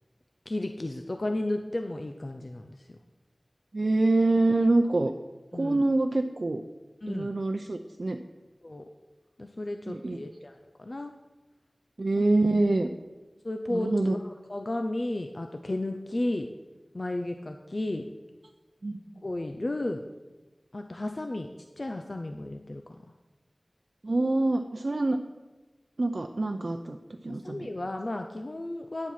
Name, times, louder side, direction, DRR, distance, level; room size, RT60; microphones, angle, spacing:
voice 1, 0.5-3.0 5.5-5.8 7.0-7.3 8.6-8.8 9.4-11.1 13.4-14.2 14.5-16.5 16.9-18.1 19.2-20.0 20.7-21.5 21.8-22.8 27.3-29.1, left 1 dB, 55° left, 5 dB, 0.6 m, -33 dB
voice 2, 3.7-5.1 5.5-6.6 7.1-8.2 9.9-10.2 12.0-12.9 13.7-14.2 18.8-19.0 24.0-25.2 26.0-27.0 27.2-27.7, right 2 dB, 70° right, 5 dB, 0.6 m, -25 dB
9.7 x 7.3 x 5.7 m, 1.2 s
wide cardioid pair, 45°, 0 cm